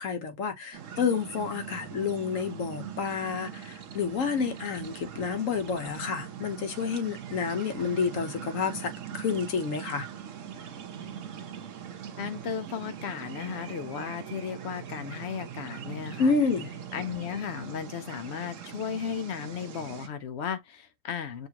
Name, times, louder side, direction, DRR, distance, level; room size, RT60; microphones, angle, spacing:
voice 1, 0.0-10.1 16.2-16.7, left 5 dB, 80° left, 1.4 m, -29 dB
sound 1, 0.7-20.1, right 8 dB, 80° right, 1.2 m, -42 dB
voice 2, 12.2-16.4 16.9-21.5, left 7 dB, 65° left, 0.8 m, -35 dB
6.8 x 2.6 x 2.9 m
omnidirectional pair, 1.3 m